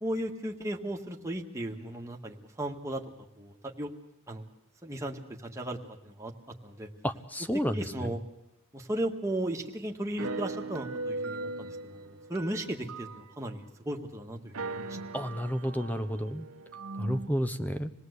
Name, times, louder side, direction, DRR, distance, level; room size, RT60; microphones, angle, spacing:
voice 1, 0.0-3.0 3.4-3.9 4.3-4.4 4.8-5.8 6.0-6.3 6.6-6.9 7.7-8.2 8.7-15.0, right 1 dB, 15° right, 1 dB, 1.8 m, -36 dB
voice 2, 7.0-8.1 15.1-16.5 17.0-17.9, equal, 5° left, 11 dB, 0.8 m, -31 dB
sound 1, 10.2-13.5 14.0-14.1 14.4-17.3, right 2 dB, 75° right, 1.2 m, -39 dB
26.5 x 18.5 x 8.2 m, 0.83 s
head